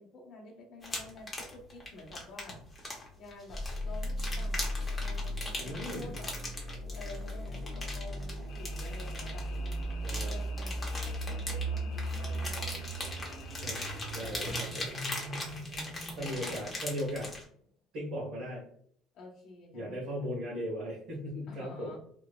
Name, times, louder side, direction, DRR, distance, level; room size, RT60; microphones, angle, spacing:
voice 1, 0.0-2.6 2.9-4.6 5.0-6.3 6.9-9.9 10.2-13.4 14.2-15.0 15.7-16.6 19.1-20.3 21.5-22.0, left 2 dB, 45° left, 0 dB, 1.0 m, -50 dB
sound 1, 0.8-17.4, left 2 dB, 15° left, 0.9 m, -40 dB
sound 2, 3.5-17.3, right 1 dB, 35° right, 0.7 m, -37 dB
voice 2, 5.6-6.1 10.0-10.4 13.6-13.8 14.1-14.9 16.2-17.3 17.9-18.6 19.7-21.9, equal, 65° right, -6 dB, 1.3 m, -37 dB
sound 3, 8.5-14.3, left 9 dB, 80° left, 0.4 m, -54 dB
3.2 x 3.0 x 2.3 m, 0.63 s
cardioid pair, 155°, 0 cm